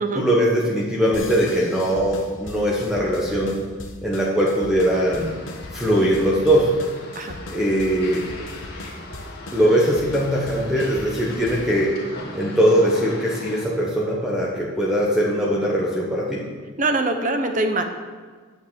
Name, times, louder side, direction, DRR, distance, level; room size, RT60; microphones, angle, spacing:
voice 1, 0.1-3.6 4.0-5.3 5.7-6.7 7.5-8.3 9.5-11.9 12.3-16.5, equal, 5° right, -4 dB, 1.2 m, -21 dB
sound 1, 1.1-11.8, left 2 dB, 70° left, 1.2 m, -39 dB
sound 2, 4.9-13.6, left 2 dB, 50° left, 2.1 m, -39 dB
voice 2, 16.8-17.8, right 2 dB, 40° right, 6 dB, 0.9 m, -23 dB
9.3 x 6.6 x 7.5 m, 1.5 s
head